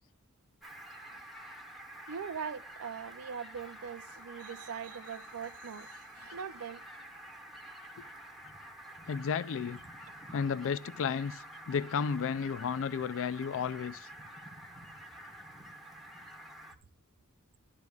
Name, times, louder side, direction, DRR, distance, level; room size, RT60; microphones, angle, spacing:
Fowl, 0.6-16.8, right 1 dB, ahead, 1.3 m, -49 dB
voice 1, 2.1-6.8, right 7 dB, 75° right, 0.5 m, -41 dB
voice 2, 9.1-9.8 10.3-14.1, left 6 dB, 60° left, 0.4 m, -33 dB
12.0 x 11.0 x 2.3 m
head